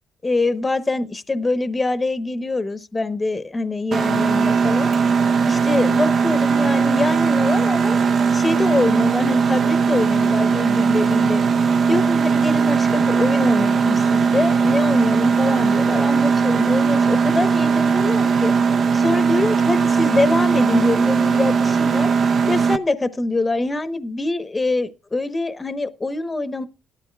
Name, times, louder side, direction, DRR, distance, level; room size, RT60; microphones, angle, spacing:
voice 1, 0.2-4.9 5.5-8.0 8.3-11.4 11.9-18.5 18.9-22.1 22.5-26.7, left 2 dB, 20° left, 0.9 m, -24 dB
Mechanisms, 3.9-22.8, right 5 dB, 50° right, 0.7 m, -18 dB
18.0 x 12.5 x 2.3 m
cardioid pair, 120°, 0 cm